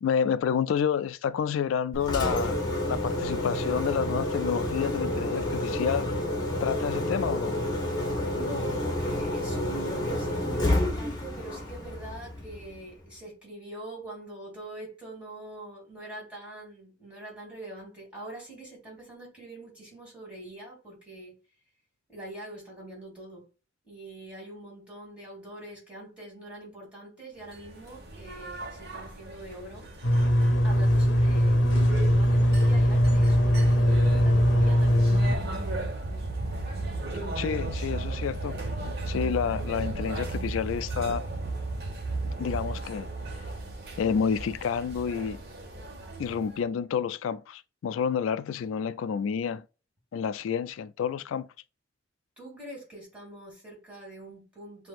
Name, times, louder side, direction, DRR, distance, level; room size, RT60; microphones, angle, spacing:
voice 1, 0.0-2.6 2.9-6.1 6.6-7.6 37.4-38.7 39.1-41.2 42.4-43.1 44.0-45.4 46.2-49.6 50.1-51.5, left 7 dB, 90° left, 0.3 m, -29 dB
Engine, 1.9-12.9, left 1 dB, 20° left, 1.7 m, -29 dB
voice 2, 8.3-21.4 22.1-23.5 23.8-29.9 30.6-35.9 52.4-54.9, right 2 dB, 5° right, 2.8 m, -44 dB
sound 1, 27.5-46.6, right 2 dB, 55° right, 1.2 m, -34 dB
sound 2, 30.0-35.4, equal, 65° left, 0.8 m, -21 dB
7.6 x 2.7 x 2.5 m
head